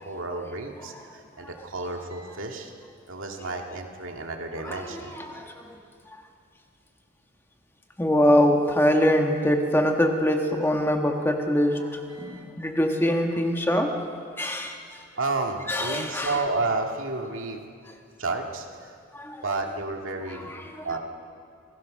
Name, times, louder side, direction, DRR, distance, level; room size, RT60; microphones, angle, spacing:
voice 1, 0.0-2.7 3.1-5.2 12.1-12.4 15.2-17.6 18.2-19.0 19.4-20.5 20.8-21.0, right 3 dB, 75° right, 2 dB, 2.2 m, -31 dB
voice 2, 4.6-5.7 8.0-13.9 14.4-14.8 15.7-16.3 19.1-19.4 20.3-20.9, equal, 10° left, 3 dB, 1.4 m, -24 dB
28.5 x 17.0 x 6.5 m, 2.3 s
head